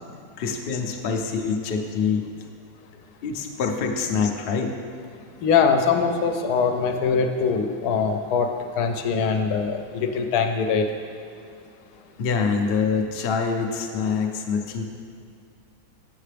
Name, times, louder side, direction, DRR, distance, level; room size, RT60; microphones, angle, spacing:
voice 1, 0.4-2.3 3.2-4.7 12.2-14.8, left 5 dB, 55° left, 3 dB, 0.6 m, -25 dB
voice 2, 5.4-8.5 8.8-10.8, left 5 dB, 85° left, 5 dB, 1.1 m, -22 dB
8.5 x 6.6 x 3.3 m, 2.3 s
omnidirectional pair, 1.6 m